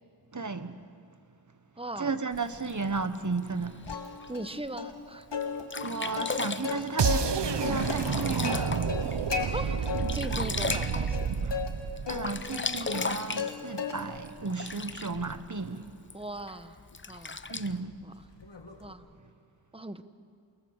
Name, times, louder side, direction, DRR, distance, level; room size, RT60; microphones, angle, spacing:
voice 1, 0.3-0.8 2.0-3.8 5.8-7.3 7.6-8.8 11.4-11.6 12.1-15.9 17.5-18.0, right 4 dB, 45° right, 1.3 m, -34 dB
voice 2, 1.8-2.2 4.3-5.3 9.4-11.3 16.1-16.7 17.1-17.4 18.0-18.1 18.8-19.1 19.7-20.0, right 2 dB, 15° right, 1.1 m, -39 dB
Sink (filling or washing), 2.3-4.3 4.9-5.0 5.4-5.5 5.7-9.2 9.6-11.7 12.0-15.3 16.1-16.2 16.9-17.7, left 4 dB, 30° left, 0.7 m, -36 dB
Plucked string instrument, 3.9-4.5 4.8-4.9 5.3-7.3 7.6-9.5 9.9-10.4 10.7-11.7 12.1-13.5 13.8-14.3 14.7-18.9, left 5 dB, 85° left, 2.2 m, -36 dB
sound 1, 7.0-13.0, right 6 dB, 80° right, 1.0 m, -30 dB
28.5 x 19.0 x 7.3 m
wide cardioid pair, 50°, 42 cm